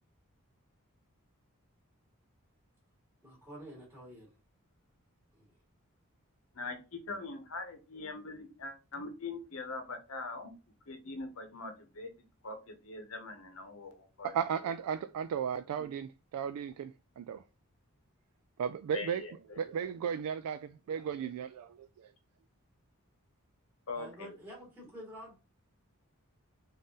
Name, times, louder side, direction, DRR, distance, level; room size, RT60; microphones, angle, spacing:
voice 1, 3.2-4.3 5.3-5.5 23.9-25.4, equal, 10° right, 2.0 m, -49 dB
voice 2, 6.5-10.5 10.9-12.1 12.4-14.3 18.9-19.7 23.9-24.4, left 3 dB, 65° left, 0.8 m, -42 dB
voice 3, 14.2-17.4 18.6-19.2 19.5-22.1, right 7 dB, 90° right, 0.3 m, -35 dB
3.9 x 2.6 x 3.6 m
head